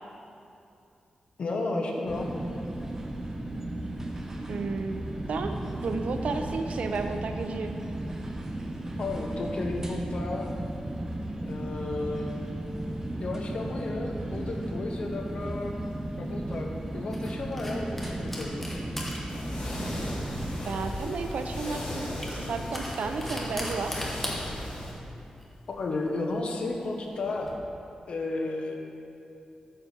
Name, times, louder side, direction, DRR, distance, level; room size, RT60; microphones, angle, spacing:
voice 1, 1.4-2.3 9.0-10.5 11.4-12.3 13.2-15.7 16.2-16.7 16.9-18.8 25.7-27.6 28.1-28.7, left 2 dB, 60° left, 1 dB, 0.9 m, -33 dB
sound 1, 2.1-20.6, right 1 dB, 20° right, 0.7 m, -35 dB
voice 2, 4.5-5.0 5.3-5.5 5.8-7.7 20.6-23.9, right 4 dB, 85° right, 6 dB, 0.6 m, -32 dB
sound 2, 14.9-27.5, equal, 10° left, 1.1 m, -41 dB
sound 3, 19.3-24.9, left 1 dB, 85° left, 2.3 m, -36 dB
8.9 x 4.6 x 6.8 m, 2.7 s
wide cardioid pair, 170°, 2 cm